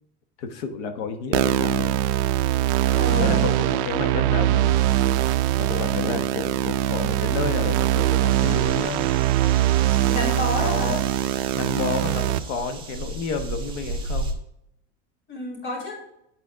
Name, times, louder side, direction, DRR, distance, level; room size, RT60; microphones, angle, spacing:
voice 1, 0.4-2.0 3.1-4.8 5.6-9.1 10.6-11.0 11.5-14.3, left 5 dB, 75° left, 7 dB, 1.2 m, -30 dB
sound 1, 1.3-12.4, right 13 dB, 55° right, 0.5 m, -22 dB
voice 2, 2.9-3.5 10.1-10.9 15.3-16.0, left 1 dB, 35° left, -3 dB, 2.9 m, -29 dB
sound 2, 8.3-14.3, right 2 dB, 15° right, 1.1 m, -35 dB
9.1 x 4.4 x 3.5 m, 0.80 s
supercardioid pair, 145°, 35 cm